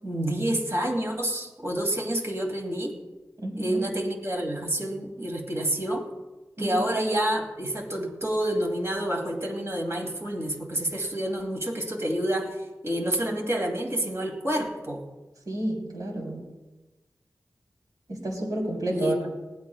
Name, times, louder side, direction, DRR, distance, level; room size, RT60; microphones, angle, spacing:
voice 1, 0.0-3.0 3.6-6.1 6.6-15.1 18.9-19.2, right 1 dB, 40° right, 2 dB, 2.6 m, -28 dB
voice 2, 3.4-3.8 6.6-6.7 15.5-16.4 18.1-19.3, right 1 dB, 65° right, -1 dB, 3.7 m, -30 dB
19.5 x 15.0 x 2.4 m, 1.1 s
wide cardioid pair, 75°, 7 cm